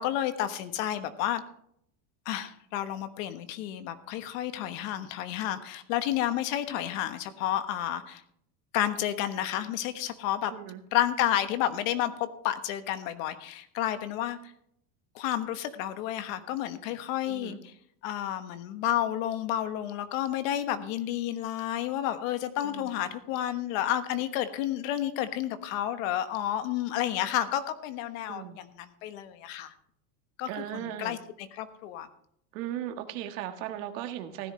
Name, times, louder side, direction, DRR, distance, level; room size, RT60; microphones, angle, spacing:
voice 1, 0.0-1.4 2.2-8.2 8.7-10.5 10.9-14.5 15.1-17.7 18.0-29.7 30.4-32.1, left 12 dB, 75° left, 11 dB, 1.3 m, -31 dB
voice 2, 10.5-10.8 17.3-17.6 22.6-22.9 28.3-28.6 30.5-31.2 32.5-34.5, right 11 dB, 75° right, 7 dB, 1.6 m, -37 dB
15.5 x 10.5 x 3.2 m, 0.70 s
supercardioid pair, 130°, 40 cm